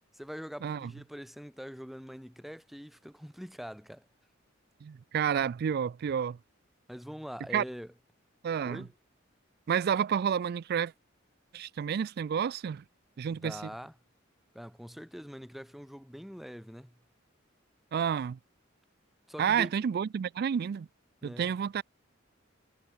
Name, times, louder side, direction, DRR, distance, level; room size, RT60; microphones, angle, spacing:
voice 1, 0.1-4.1 6.9-7.9 8.6-8.9 13.3-13.9 14.5-17.0 19.3-19.7 21.2-21.5, equal, ahead, 1.0 m, -44 dB
voice 2, 4.8-6.4 7.5-7.6 8.4-8.8 9.7-10.9 11.5-12.8 13.2-13.7 17.9-18.4 19.4-20.9 21.2-21.8, right 8 dB, 50° right, 0.3 m, -30 dB
head